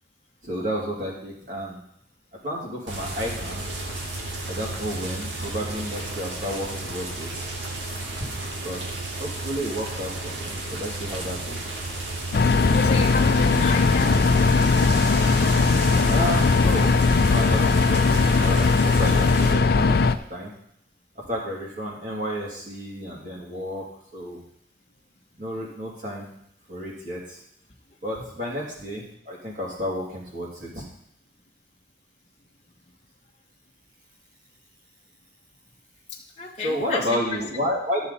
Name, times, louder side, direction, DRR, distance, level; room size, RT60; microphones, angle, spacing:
voice 1, 0.4-1.8 2.4-3.7 4.5-7.4 8.6-11.7 16.1-18.0 18.4-20.5 21.3-23.8 24.1-24.4 25.4-26.3 26.7-27.4 28.0-30.8 36.6-38.0, equal, 45° right, -3 dB, 2.9 m, -31 dB
sound 1, 2.9-19.5, right 2 dB, 85° right, 1.9 m, -32 dB
sound 2, 12.3-20.1, left 4 dB, 55° left, 0.5 m, -19 dB
voice 2, 12.6-14.2 36.4-37.4, left 3 dB, 35° left, -2 dB, 1.1 m, -31 dB
12.5 x 7.0 x 4.2 m, 0.74 s
head